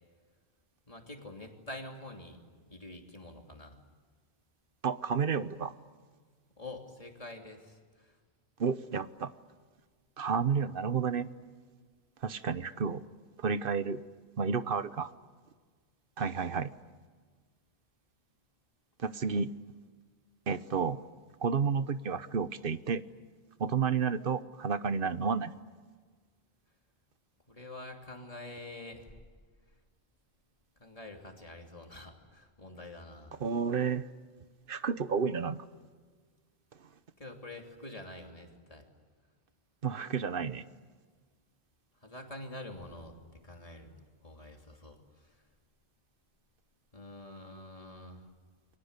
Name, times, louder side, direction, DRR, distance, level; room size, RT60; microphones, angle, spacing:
voice 1, 0.9-2.4 2.7-3.8 6.6-8.1 27.5-29.1 30.8-33.3 37.2-38.8 42.0-43.2 43.4-43.9 44.2-45.3 46.9-48.3, left 2 dB, 35° left, 2 dB, 3.2 m, -46 dB
voice 2, 4.8-5.7 8.6-9.3 10.2-11.3 12.2-13.0 13.4-14.0 14.4-15.1 16.2-16.7 19.0-19.5 20.5-21.0 21.4-23.0 23.6-25.5 33.4-34.1 34.7-35.6 39.8-40.6, right 6 dB, 60° right, 13 dB, 1.1 m, -31 dB
29.5 x 23.5 x 8.2 m, 1.5 s
omnidirectional pair, 1.1 m